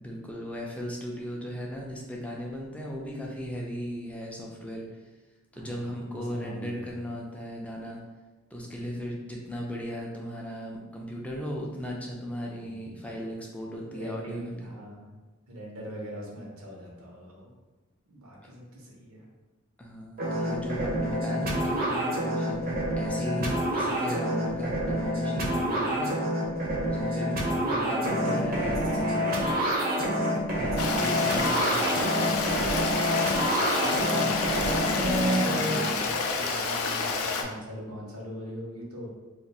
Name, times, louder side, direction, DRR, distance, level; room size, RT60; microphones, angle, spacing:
voice 1, 0.0-4.8 5.5-8.0 8.5-14.7 19.8-26.1 26.8-29.1 30.5-31.8, equal, 5° left, -2 dB, 0.5 m, -37 dB
voice 2, 5.5-6.9 12.6-13.0 13.9-15.2 15.5-17.5 18.1-19.2 27.1-29.7 30.9-32.6 33.5-39.1, equal, 75° right, -2 dB, 1.0 m, -41 dB
sound 1, 20.2-35.8, equal, 45° right, 0.7 m, -27 dB
Stream, 30.8-37.4, left 4 dB, 85° left, 0.4 m, -29 dB
2.5 x 2.5 x 4.1 m, 1.2 s
head